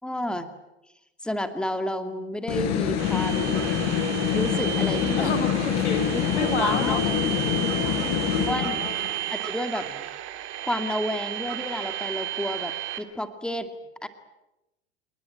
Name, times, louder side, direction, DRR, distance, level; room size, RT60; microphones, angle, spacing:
voice 1, 0.0-0.5 1.2-3.7 4.3-5.3 6.1-7.0 8.5-8.9 9.3-10.1 10.6-13.7 14.0-14.1, equal, 5° left, 8 dB, 2.3 m, -31 dB
sound 1, 2.5-9.1, left 8 dB, 50° left, 4.8 m, -25 dB
sound 2, 3.0-13.0, right 14 dB, 55° right, 3.3 m, -33 dB
voice 2, 5.1-7.1 7.4-9.0, left 5 dB, 80° left, 6 dB, 3.8 m, -31 dB
29.5 x 20.0 x 8.8 m, 0.97 s
figure-of-eight pair, 75°, 34 cm